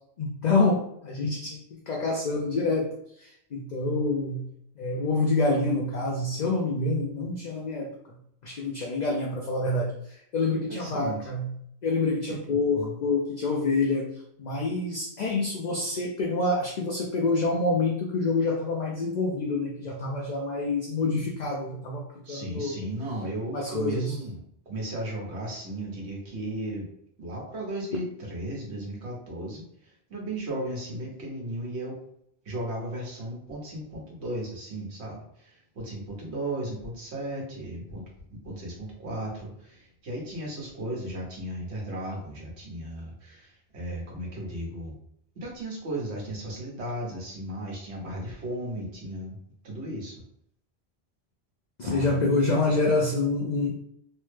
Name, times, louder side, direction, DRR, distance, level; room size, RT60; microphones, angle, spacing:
voice 1, 0.2-2.9 3.2-4.5 4.8-7.9 8.4-11.5 11.8-14.1 14.4-22.8 23.5-24.2 51.8-53.7, left 3 dB, 55° left, -1 dB, 0.5 m, -27 dB
voice 2, 10.7-11.2 12.3-12.4 12.7-12.9 22.2-24.4 24.7-26.9 27.2-32.0 32.4-38.0 38.3-45.0 45.3-49.4 49.6-50.2 51.8-52.2, right 1 dB, 85° right, -2 dB, 1.3 m, -35 dB
3.2 x 2.1 x 3.1 m, 0.71 s
omnidirectional pair, 1.1 m